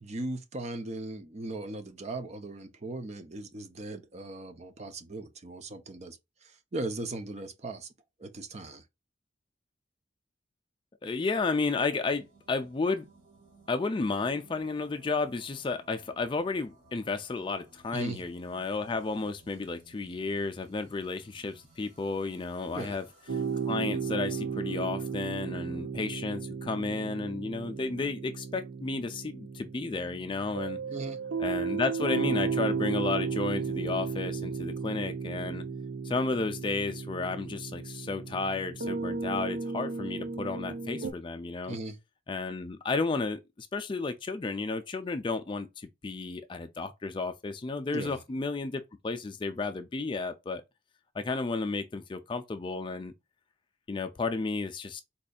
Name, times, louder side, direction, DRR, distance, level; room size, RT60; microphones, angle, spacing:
voice 1, 0.0-7.9 8.2-8.8 17.9-18.2 22.7-23.0 30.9-31.2 41.7-42.0 47.9-48.2, right 2 dB, 35° right, 0.5 m, -38 dB
voice 2, 11.0-13.1 13.7-23.1 23.7-30.8 31.4-35.6 36.0-41.8 42.3-50.6 51.1-53.1 53.9-55.0, left 3 dB, 25° left, 0.3 m, -32 dB
sound 1, 12.0-25.9, right 2 dB, 55° right, 2.2 m, -59 dB
sound 2, 23.3-41.1, right 5 dB, 85° right, 0.6 m, -34 dB
4.1 x 2.6 x 2.2 m
head